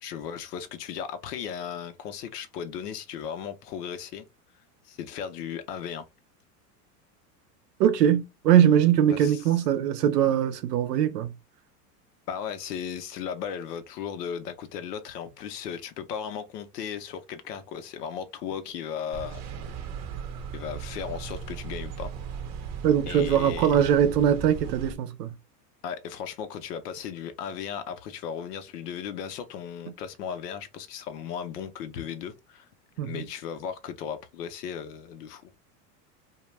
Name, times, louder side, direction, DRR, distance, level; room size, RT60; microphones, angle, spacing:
voice 1, 0.0-4.2 4.8-6.1 9.1-9.5 12.3-19.4 20.5-22.1 23.1-23.8 25.8-32.7 33.0-35.5, left 8 dB, 80° left, 0.7 m, -36 dB
voice 2, 7.8-11.3 22.8-25.3 33.0-33.2, right 9 dB, 80° right, 0.7 m, -22 dB
sound 1, 19.1-24.9, right 7 dB, 35° right, 0.6 m, -37 dB
2.3 x 2.2 x 3.1 m
hypercardioid pair, 95°, 48 cm